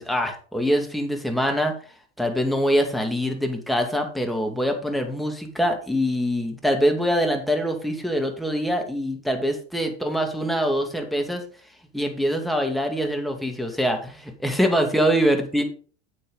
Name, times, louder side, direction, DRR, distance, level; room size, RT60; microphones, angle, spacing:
voice 1, 0.0-1.7 2.2-11.4 11.9-15.6, equal, ahead, 3 dB, 2.3 m, -24 dB
8.5 x 8.4 x 4.0 m, 0.39 s
hypercardioid pair, 85°, 33 cm